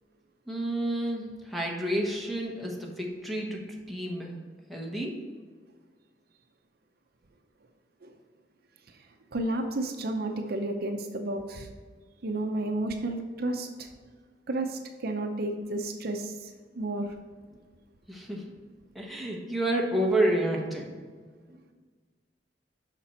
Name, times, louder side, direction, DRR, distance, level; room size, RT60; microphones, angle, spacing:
voice 1, 0.5-5.2 18.1-18.4 18.9-21.0 21.5-21.6, right 1 dB, ahead, -1 dB, 1.1 m, -30 dB
voice 2, 9.3-11.7 12.2-13.9 14.5-17.1, right 2 dB, 60° right, 5 dB, 0.6 m, -32 dB
6.8 x 5.9 x 4.4 m, 1.5 s
head